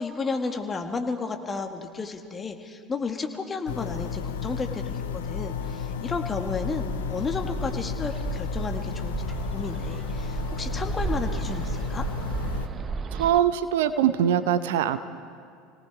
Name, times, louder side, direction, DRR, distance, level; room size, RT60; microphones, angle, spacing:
voice 1, 0.0-12.0, left 4 dB, 25° left, 4 dB, 1.9 m, -32 dB
sound 1, 3.7-12.7, left 7 dB, 75° left, 0.9 m, -33 dB
Bird, 6.1-13.4, right 5 dB, 30° right, 1.0 m, -34 dB
voice 2, 13.1-15.0, right 10 dB, 65° right, 11 dB, 0.8 m, -22 dB
29.5 x 18.5 x 4.8 m, 2.3 s
figure-of-eight pair, 70°, 0 cm